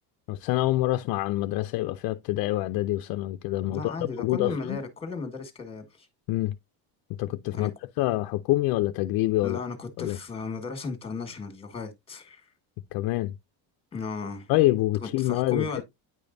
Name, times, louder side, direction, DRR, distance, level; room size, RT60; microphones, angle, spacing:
voice 1, 0.3-4.8 6.3-6.6 7.2-7.7 8.0-9.6 10.0-10.2 12.9-13.3 14.5-15.8, left 17 dB, 60° left, 0.5 m, -26 dB
voice 2, 3.7-6.1 7.5-7.7 9.4-12.5 13.9-14.5 15.0-15.8, left 4 dB, 15° left, 1.6 m, -35 dB
9.6 x 5.1 x 2.6 m
cardioid pair, 150°, 42 cm